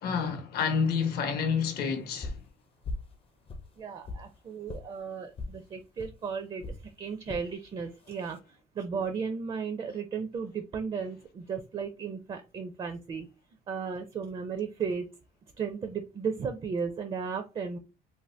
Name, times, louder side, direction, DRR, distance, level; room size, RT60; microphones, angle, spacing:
voice 1, 0.0-2.4, left 6 dB, 70° left, 0.8 m, -29 dB
sound 1, 2.2-2.5 2.8-3.1 3.5-4.3 4.7-4.8 5.4-5.6 6.0-6.1 6.6-6.8 7.3-7.5 8.0-8.4, left 2 dB, 35° left, 0.5 m, -38 dB
voice 2, 3.8-8.4 8.7-13.3 13.7-15.1 15.6-17.8, right 6 dB, 30° right, 0.4 m, -35 dB
2.6 x 2.1 x 3.2 m
cardioid pair, 110°, 17 cm